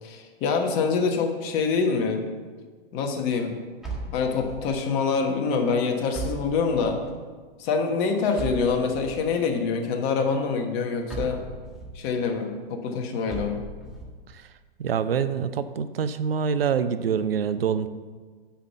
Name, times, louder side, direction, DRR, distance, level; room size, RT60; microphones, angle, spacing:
voice 1, 0.0-2.2 2.9-3.6 4.1-7.0 7.6-11.4 11.9-13.6, left 5 dB, 35° left, 4 dB, 1.4 m, -25 dB
sound 1, 3.8-4.8 6.1-7.1 8.4-9.3 11.1-12.0 13.3-14.1, right 2 dB, ahead, 1.7 m, -36 dB
voice 2, 14.8-17.9, right 7 dB, 75° right, 12 dB, 0.6 m, -25 dB
8.4 x 5.9 x 6.8 m, 1.4 s
figure-of-eight pair, 110°, 30 cm